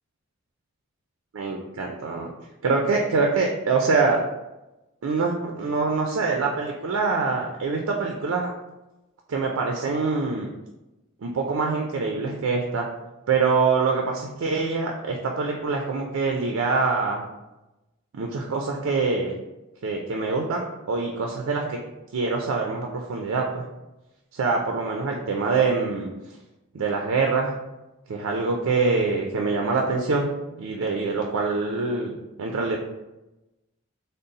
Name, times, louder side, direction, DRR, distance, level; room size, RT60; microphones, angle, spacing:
voice 1, 1.3-2.3 2.6-4.2 5.0-8.5 9.3-10.5 11.2-12.9 13.3-17.3 18.1-19.4 19.8-21.8 22.1-23.6 24.3-26.1 26.7-27.5 28.1-30.3 30.6-32.8, right 4 dB, 90° right, 1 dB, 0.4 m, -25 dB
3.8 x 2.0 x 3.8 m, 1.0 s
head